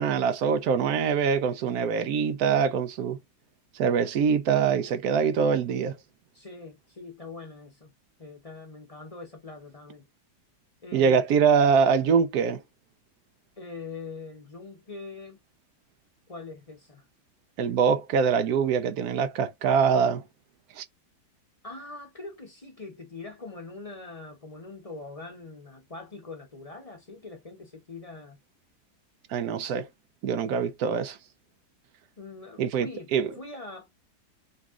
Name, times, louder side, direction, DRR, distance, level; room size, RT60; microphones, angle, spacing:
voice 1, 0.0-3.2 3.8-6.0 10.9-12.6 17.6-20.2 20.8-20.9 29.3-29.9 30.2-31.2 32.6-32.9 33.1-33.3, right 6 dB, 70° right, 1.1 m, -24 dB
voice 2, 6.3-7.9 8.2-10.1 10.8-11.2 13.6-15.4 16.3-17.1 21.6-28.4 32.2-34.0, left 3 dB, 30° left, 0.8 m, -42 dB
4.0 x 2.3 x 3.6 m
omnidirectional pair, 1.7 m